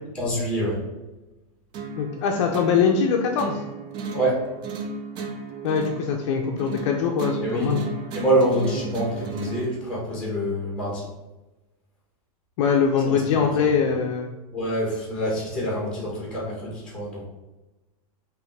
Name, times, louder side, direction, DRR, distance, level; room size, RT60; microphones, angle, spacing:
voice 1, 0.1-0.8 4.1-4.4 7.4-7.7 8.1-11.0 13.0-13.7 14.5-17.2, right 1 dB, 5° left, -4 dB, 1.6 m, -26 dB
sound 1, 1.7-9.7, right 4 dB, 25° right, 0.4 m, -35 dB
voice 2, 2.0-3.6 5.6-7.8 12.6-14.3, left 6 dB, 50° left, 2 dB, 0.6 m, -22 dB
5.0 x 3.0 x 3.5 m, 1.1 s
supercardioid pair, 165°, 19 cm